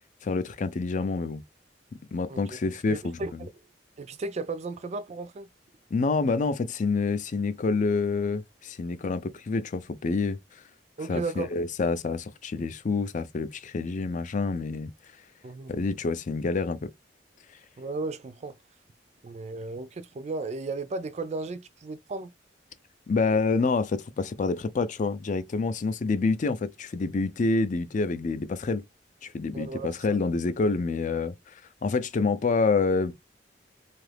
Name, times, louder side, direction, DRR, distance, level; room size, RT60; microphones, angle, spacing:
voice 1, 0.2-1.4 2.1-3.5 5.9-10.4 11.1-14.9 15.7-16.9 23.1-28.8 29.2-31.5 31.8-33.1, left 4 dB, 45° left, 0.4 m, -27 dB
voice 2, 2.9-3.5 4.0-5.5 11.0-11.5 15.4-15.7 17.8-18.6 19.2-22.3 29.5-30.2, right 3 dB, 40° right, 0.4 m, -35 dB
2.7 x 2.4 x 3.3 m
head